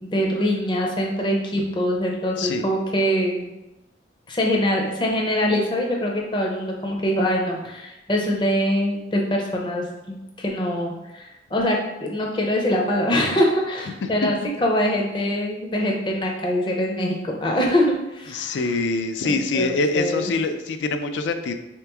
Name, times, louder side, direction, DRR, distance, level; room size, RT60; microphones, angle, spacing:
voice 1, 0.0-3.5 4.3-18.7 19.2-20.3, equal, 25° left, 0 dB, 0.5 m, -24 dB
voice 2, 18.3-21.5, left 3 dB, 80° left, 8 dB, 0.4 m, -24 dB
3.3 x 3.0 x 3.4 m, 0.99 s
head